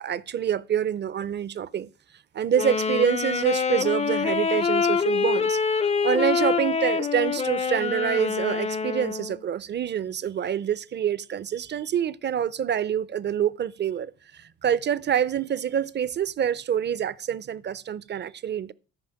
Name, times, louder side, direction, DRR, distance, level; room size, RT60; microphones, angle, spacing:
voice 1, 0.0-1.9 2.3-5.6 6.0-18.7, right 9 dB, 35° right, 0.5 m, -26 dB
Wind instrument woodwind instrument, 2.5-9.4, left 5 dB, 20° left, 0.4 m, -25 dB
13.5 x 5.0 x 5.8 m
cardioid pair, 90°, 30 cm